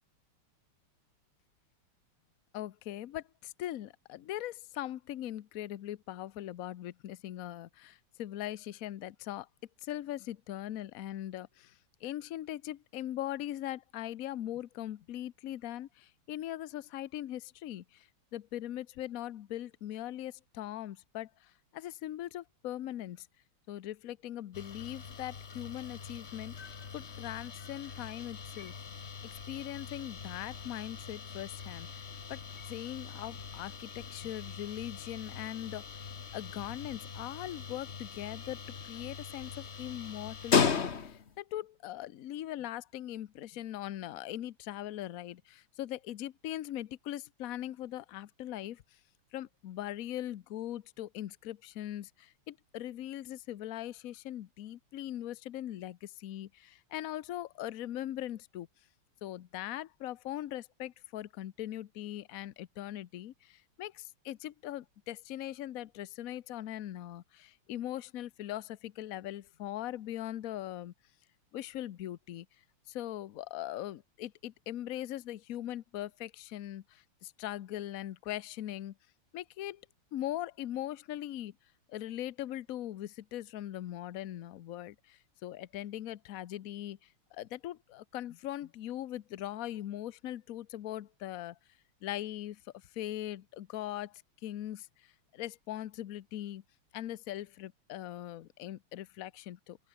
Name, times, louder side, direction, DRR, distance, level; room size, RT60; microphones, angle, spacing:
voice 1, 2.5-9.5 9.8-23.3 23.7-26.6 26.9-28.7 29.2-49.0 49.3-58.7 59.2-70.9 71.5-72.5 72.9-78.9 79.3-79.9 80.1-81.5 81.9-91.6 92.0-96.6 96.9-99.8, left 13 dB, 70° left, 0.8 m, -40 dB
sound 1, 24.5-41.4, left 6 dB, 35° left, 1.3 m, -38 dB
open air
omnidirectional pair, 2.4 m